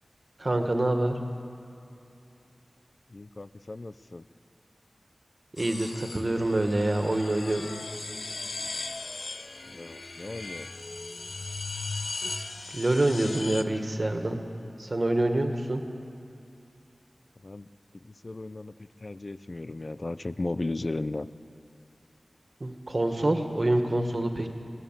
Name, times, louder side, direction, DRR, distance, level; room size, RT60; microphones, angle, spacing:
voice 1, 0.4-1.2 5.6-7.8 12.2-12.3 12.7-14.4 14.8-15.8 22.6-24.5, right 1 dB, 40° right, 5 dB, 1.9 m, -26 dB
voice 2, 3.1-4.2 9.7-10.7 17.4-17.7 18.2-18.7 19.0-21.3, left 2 dB, 45° left, 14 dB, 0.6 m, -35 dB
sound 1, 5.6-13.6, left 3 dB, 70° left, 1.0 m, -38 dB
26.0 x 17.0 x 7.6 m, 2.6 s
wide cardioid pair, 75°, 0 cm